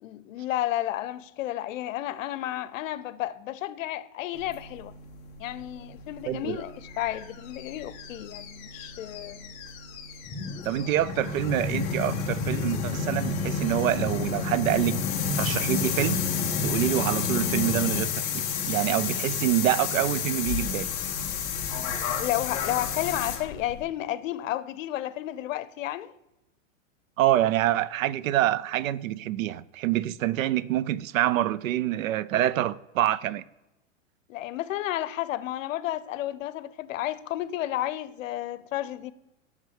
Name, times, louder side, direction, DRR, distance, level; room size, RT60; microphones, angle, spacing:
voice 1, 0.0-4.9 5.4-9.5 22.2-26.1 34.3-39.1, left 13 dB, 75° left, 0.6 m, -32 dB
sound 1, 4.4-23.8, left 6 dB, 15° left, 0.3 m, -31 dB
voice 2, 6.3-6.6 10.6-15.0 15.3-16.2 16.6-20.9 27.2-33.4, right 13 dB, 85° right, 0.5 m, -26 dB
sound 2, 20.4-22.0, left 1 dB, 20° right, 1.5 m, -48 dB
10.5 x 3.7 x 6.3 m
supercardioid pair, 150°, 39 cm